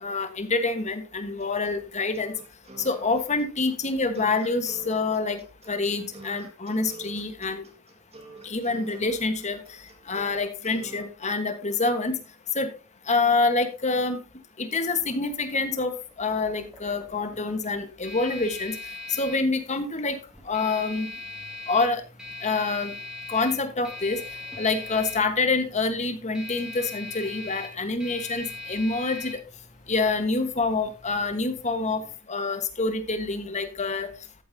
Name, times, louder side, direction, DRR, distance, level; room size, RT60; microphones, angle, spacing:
voice 1, 0.0-2.3 2.8-5.4 5.7-7.6 8.4-9.6 10.1-12.2 12.5-12.7 13.1-14.2 14.6-15.9 16.2-18.7 19.1-20.2 20.5-21.1 21.7-22.0 22.4-22.9 23.3-24.2 24.6-29.4 29.9-32.0 32.3-34.1, left 3 dB, 30° left, 8 dB, 1.3 m, -26 dB
sound 1, 1.4-11.0, right 3 dB, 30° right, 1.8 m, -46 dB
sound 2, 15.4-32.1, left 4 dB, 5° right, 2.6 m, -41 dB
13.5 x 8.7 x 2.7 m, 0.32 s
head